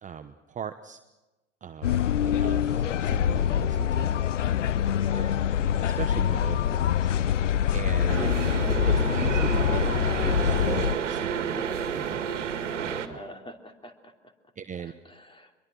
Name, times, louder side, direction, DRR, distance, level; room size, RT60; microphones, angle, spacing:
voice 1, 0.0-1.0 1.6-4.1 5.8-7.1 7.7-8.3 8.9-12.5 12.8-13.2 14.6-14.9, right 7 dB, 20° right, 8 dB, 1.1 m, -39 dB
sound 1, 1.8-10.9, left 9 dB, 80° left, 0.7 m, -25 dB
voice 2, 5.0-5.4 13.1-14.3 14.8-15.5, left 1 dB, 15° left, 4 dB, 3.1 m, -45 dB
sound 2, 8.1-13.1, right 7 dB, 80° right, 2.0 m, -30 dB
25.0 x 22.5 x 6.2 m, 1.1 s
hypercardioid pair, 90°, 36 cm